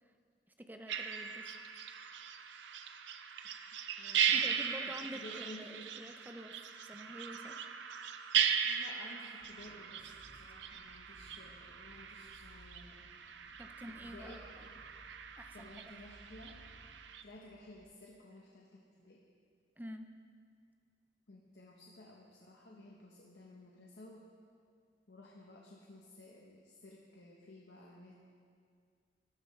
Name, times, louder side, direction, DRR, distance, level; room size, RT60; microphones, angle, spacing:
voice 1, 0.6-1.5 4.3-7.6 13.6-14.7 15.4-15.7 19.8-20.1, equal, 10° right, 6 dB, 0.6 m, -48 dB
sound 1, 0.9-17.2, right 8 dB, 80° right, 0.6 m, -38 dB
voice 2, 4.0-5.9 8.6-13.1 13.9-14.4 15.5-16.6 17.2-19.2 21.3-24.2 25.1-28.1, left 1 dB, 70° left, -2 dB, 1.0 m, -54 dB
sound 2, 9.4-17.9, equal, 50° left, 3.0 m, -61 dB
13.5 x 13.0 x 3.2 m, 2.2 s
head